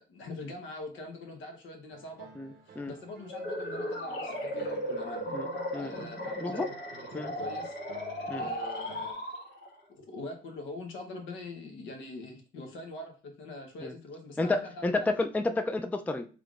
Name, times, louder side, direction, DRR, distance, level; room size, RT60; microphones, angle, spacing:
voice 1, 0.0-2.3 2.6-5.2 5.8-6.7 7.1-7.8 8.3-9.2 10.0-15.1, left 2 dB, 75° left, 2 dB, 1.0 m, -43 dB
sound 1, 1.9-9.1, right 6 dB, 55° right, 0.6 m, -52 dB
voice 2, 2.4-2.9 5.3-5.5 5.7-6.6 7.1-7.3 8.3-8.5 13.8-13.9 14.4-16.3, left 2 dB, 10° left, 7 dB, 0.3 m, -31 dB
sound 2, 3.3-9.8, equal, 55° left, 1.4 m, -36 dB
3.5 x 3.3 x 2.4 m, 0.36 s
cardioid pair, 90°, 20 cm